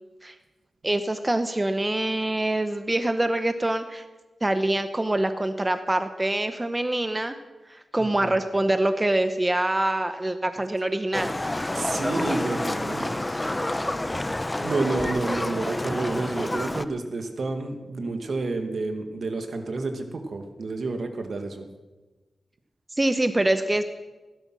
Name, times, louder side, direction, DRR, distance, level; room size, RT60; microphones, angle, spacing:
voice 1, 0.8-4.0 4.4-7.3 7.7-11.3 23.0-23.8, right 1 dB, 20° right, 9 dB, 0.8 m, -25 dB
voice 2, 8.0-8.3 11.7-13.1 14.6-21.7, right 3 dB, 65° right, 6 dB, 1.8 m, -30 dB
Livestock farm animals working animals, 11.1-16.8, left 1 dB, 15° left, 0.7 m, -28 dB
16.0 x 12.0 x 6.2 m, 1.2 s
wide cardioid pair, 95°, 0 cm